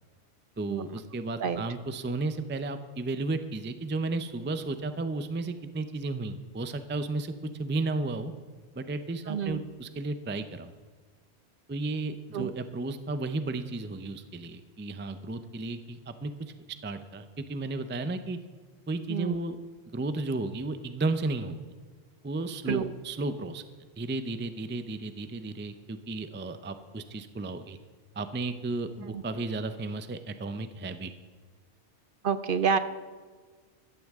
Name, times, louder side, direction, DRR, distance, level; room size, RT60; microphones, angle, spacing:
voice 1, 0.6-8.3 8.7-10.7 11.7-16.5 16.8-18.4 18.9-19.6 19.9-21.6 22.2-23.7 24.0-27.8 28.2-31.1, right 2 dB, 15° right, 10 dB, 0.4 m, -33 dB
voice 2, 9.3-9.6 12.3-12.5 19.1-19.4 22.7-22.9 29.1-29.2 32.2-32.8, right 6 dB, 55° right, 12 dB, 0.7 m, -28 dB
14.5 x 14.0 x 3.6 m, 1.5 s
omnidirectional pair, 1.2 m